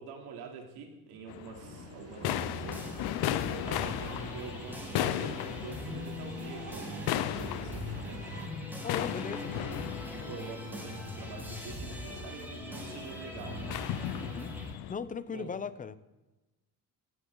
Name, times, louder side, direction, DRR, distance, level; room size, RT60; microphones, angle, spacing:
voice 1, 0.0-2.9 3.5-8.4 9.0-9.9 10.1-13.7 15.3-15.5, right 5 dB, 85° right, 3 dB, 3.4 m, -46 dB
sound 1, 1.3-14.9, left 12 dB, 75° left, 1.0 m, -37 dB
sound 2, 1.6-8.5, right 7 dB, 40° right, 1.1 m, -47 dB
sound 3, 2.2-14.7, left 1 dB, 5° right, 4.0 m, -42 dB
voice 2, 8.8-9.5 10.2-10.3 14.2-16.0, left 6 dB, 20° left, 14 dB, 0.7 m, -39 dB
18.0 x 15.5 x 4.0 m, 1.1 s
cardioid pair, 155°, 38 cm